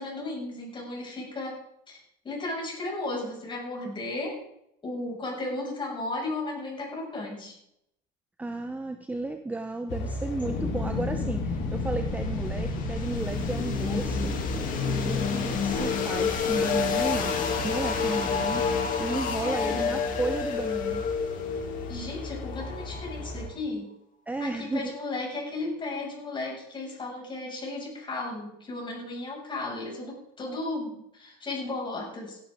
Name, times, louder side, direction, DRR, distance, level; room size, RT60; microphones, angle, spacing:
voice 1, 0.0-4.4 4.8-7.6 14.8-15.2 19.2-20.2 21.9-23.9 24.4-32.4, left 2 dB, 25° left, -1 dB, 6.4 m, -35 dB
voice 2, 8.4-14.3 15.1-17.3 17.6-21.0 24.3-24.9, right 2 dB, 10° right, 7 dB, 0.8 m, -33 dB
sound 1, 9.9-23.5, equal, 60° left, 3.4 m, -37 dB
sound 2, 10.5-23.3, left 5 dB, 45° left, 2.8 m, -29 dB
17.0 x 11.5 x 3.7 m, 0.78 s
supercardioid pair, 120°, 20 cm